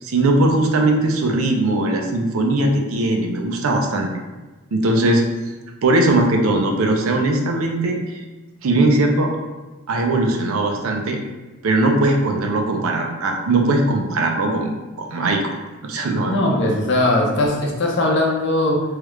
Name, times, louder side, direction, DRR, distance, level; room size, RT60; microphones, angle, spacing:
voice 1, 0.0-4.1 4.7-5.2 5.8-8.2 8.6-9.3 9.9-11.2 11.6-14.7 15.0-15.5 15.8-16.7, right 2 dB, 75° right, 2 dB, 0.5 m, -19 dB
voice 2, 16.3-18.8, left 1 dB, 55° left, -2 dB, 0.6 m, -19 dB
3.2 x 2.3 x 3.1 m, 1.2 s
head